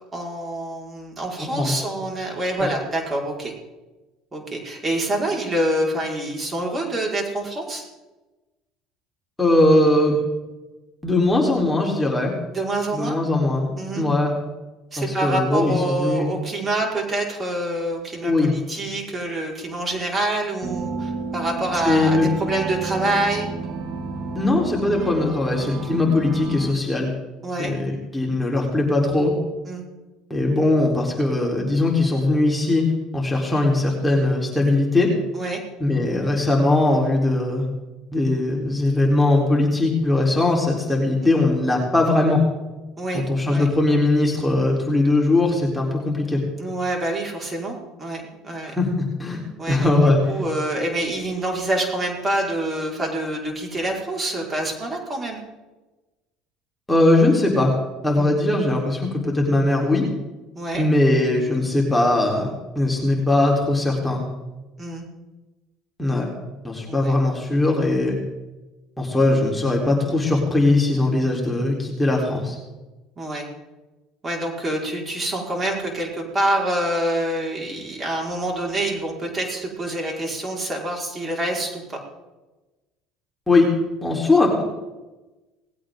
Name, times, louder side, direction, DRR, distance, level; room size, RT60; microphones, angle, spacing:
voice 1, 0.1-3.5 4.3-7.8 12.5-13.2 13.8-14.0 14.9-23.5 27.4-27.7 29.7-29.8 35.3-35.6 41.2-41.4 43.0-43.2 43.5-43.7 46.6-48.7 49.6-55.4 58.2-58.4 60.6-60.8 64.8-65.0 66.9-67.2 73.2-73.5 74.2-82.0, right 1 dB, 25° right, -1 dB, 5.2 m, -26 dB
voice 2, 1.4-1.8 2.6-2.7 9.4-10.2 11.0-12.3 12.9-14.3 15.0-16.3 18.2-18.5 21.8-22.3 24.3-27.1 27.6-29.3 30.3-32.9 33.1-35.1 35.8-37.7 38.1-42.4 43.1-46.4 48.7-49.4 49.7-50.4 56.9-57.7 58.0-60.1 60.7-62.5 62.8-64.2 66.0-66.3 66.6-68.2 69.0-72.6 83.5-83.7 84.0-84.6, left 2 dB, 10° left, -1 dB, 4.2 m, -20 dB
sound 1, 20.6-26.7, right 4 dB, 50° right, 2.4 m, -31 dB
19.0 x 16.5 x 3.9 m, 1.1 s
hypercardioid pair, 75°, 0 cm